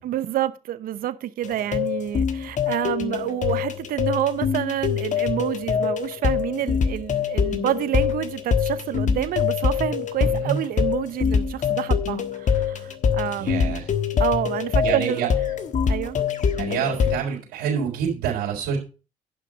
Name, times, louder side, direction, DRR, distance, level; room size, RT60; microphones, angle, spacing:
voice 1, 0.0-13.8 14.2-15.3 15.9-16.2, right 12 dB, 70° right, 0.9 m, -28 dB
sound 1, 1.4-17.2, left 7 dB, 55° left, 1.4 m, -24 dB
voice 2, 10.2-10.6 13.4-13.8 14.8-15.3 16.6-18.8, right 8 dB, 90° right, 3.9 m, -27 dB
11.0 x 5.8 x 5.1 m
supercardioid pair, 65°, 15 cm